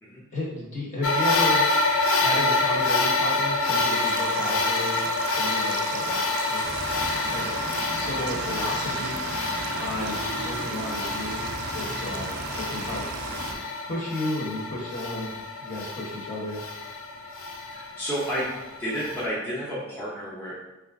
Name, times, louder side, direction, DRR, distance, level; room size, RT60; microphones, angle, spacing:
voice 1, 0.3-1.7 2.1-5.0 5.4-6.2 6.5-6.6 7.2-7.6 7.9-9.2 9.8-11.4 11.7-13.0 13.8-16.6, left 1 dB, 35° left, -4 dB, 1.0 m, -33 dB
sound 1, 1.0-19.2, left 3 dB, 65° left, 0.5 m, -27 dB
clay-in-water, 3.9-13.5, right 7 dB, 75° right, 0.3 m, -37 dB
sound 2, 6.6-13.6, equal, 80° left, 1.2 m, -37 dB
voice 2, 17.7-18.5 18.8-20.5, equal, 10° left, -9 dB, 0.8 m, -31 dB
4.1 x 2.4 x 3.5 m, 1.0 s
head